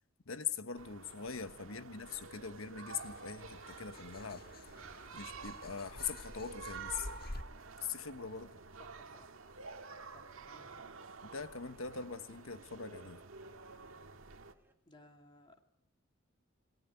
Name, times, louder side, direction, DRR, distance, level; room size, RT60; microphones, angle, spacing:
voice 1, 0.3-4.4 5.1-7.1 7.8-8.6 11.3-13.2, left 6 dB, 85° left, 11 dB, 1.2 m, -42 dB
Berlin City Courtyard in the evening, 0.8-14.5, right 4 dB, 85° right, 1.8 m, -50 dB
sound 1, 2.9-7.4, left 1 dB, 45° left, 1.6 m, -49 dB
sound 2, 3.5-14.7, right 1 dB, 10° right, 3.6 m, -71 dB
voice 2, 8.8-9.4 10.1-10.9 14.9-15.6, left 1 dB, 25° left, 4 dB, 2.5 m, -61 dB
29.5 x 19.5 x 9.5 m, 0.74 s
head